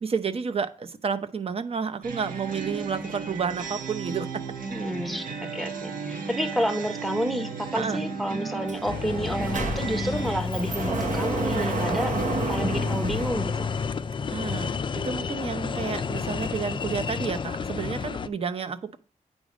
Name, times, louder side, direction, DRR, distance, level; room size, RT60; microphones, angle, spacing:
voice 1, 0.0-4.4 7.7-8.0 14.3-19.0, right 5 dB, 45° right, 0.8 m, -30 dB
sound 1, 2.0-10.4, right 5 dB, 80° right, 1.7 m, -34 dB
voice 2, 4.7-5.3 5.5-12.2 12.4-13.7, equal, ahead, 0.9 m, -30 dB
Sliding door, 8.7-8.8 9.1-14.1, right 4 dB, 65° right, 1.1 m, -31 dB
sound 2, 8.8-18.3, left 6 dB, 35° left, 0.4 m, -31 dB
8.8 x 5.1 x 5.0 m
wide cardioid pair, 130°, 14 cm